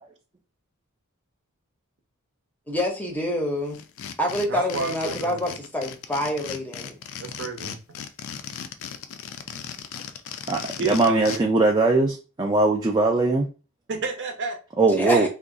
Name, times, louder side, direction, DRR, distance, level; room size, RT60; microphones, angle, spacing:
voice 1, 2.7-3.8 4.2-7.0 14.9-15.3, left 1 dB, 5° left, 0.7 m, -27 dB
sound 1, 3.7-11.4, left 8 dB, 65° left, 0.4 m, -37 dB
voice 2, 4.5-5.4 7.2-8.0 10.8-11.4 13.9-14.6 15.1-15.3, right 4 dB, 55° right, 0.7 m, -31 dB
voice 3, 10.5-13.5 14.8-15.3, right 3 dB, 20° right, 0.3 m, -20 dB
2.5 x 2.3 x 3.7 m
head